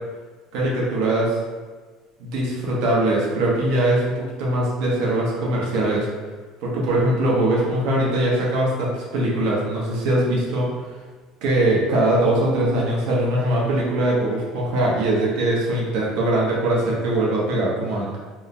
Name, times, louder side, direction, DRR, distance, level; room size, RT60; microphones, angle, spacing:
voice 1, 0.5-1.4 2.2-6.1 6.6-10.7 11.4-18.2, right 1 dB, 65° right, -4 dB, 0.7 m, -21 dB
3.0 x 2.0 x 2.4 m, 1.4 s
cardioid pair, 165°, 0 cm